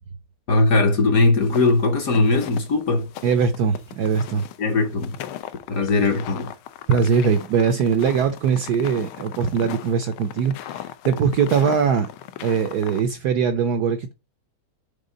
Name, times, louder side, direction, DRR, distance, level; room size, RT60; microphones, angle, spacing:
voice 1, 0.5-3.1 4.6-5.2 5.7-6.5, left 3 dB, 55° left, 1.1 m, -19 dB
sound 1, 1.4-13.0, left 11 dB, 90° left, 1.5 m, -38 dB
voice 2, 3.2-4.4 6.9-12.1 12.4-14.1, right 6 dB, 70° right, 0.9 m, -21 dB
5.4 x 3.6 x 5.0 m
omnidirectional pair, 2.2 m